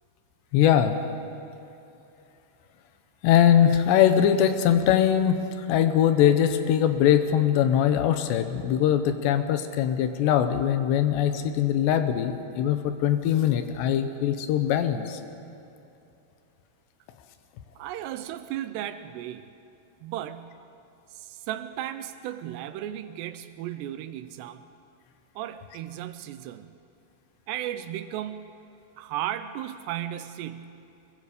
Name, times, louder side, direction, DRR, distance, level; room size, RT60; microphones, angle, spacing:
voice 1, 0.5-0.9 3.2-15.2, left 10 dB, 85° left, 8 dB, 3.2 m, -22 dB
voice 2, 17.8-19.5 20.0-20.6 21.1-24.7 25.4-26.7 27.5-28.5 29.0-30.8, right 12 dB, 85° right, 11 dB, 2.8 m, -35 dB
25.0 x 22.5 x 5.1 m, 2.7 s
omnidirectional pair, 4.8 m